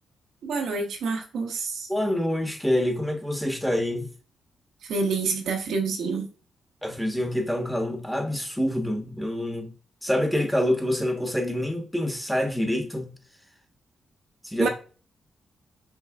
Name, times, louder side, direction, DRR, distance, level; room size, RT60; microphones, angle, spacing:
voice 1, 0.4-1.9 4.8-6.3 14.6-14.7, right 4 dB, 75° right, 0.9 m, -27 dB
voice 2, 1.9-4.1 6.8-9.7 10.0-13.2 14.4-14.7, left 1 dB, ahead, 1.1 m, -26 dB
5.5 x 3.1 x 2.4 m
supercardioid pair, 55°, 0 cm